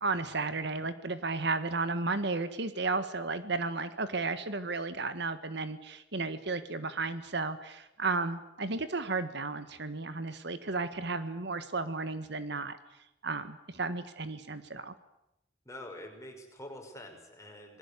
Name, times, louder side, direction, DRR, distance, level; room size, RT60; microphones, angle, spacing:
voice 1, 0.0-12.8 13.2-14.9, right 3 dB, 65° right, 11 dB, 1.6 m, -33 dB
voice 2, 15.7-17.8, left 1 dB, 15° left, 2 dB, 5.5 m, -46 dB
27.0 x 20.5 x 8.4 m, 0.85 s
head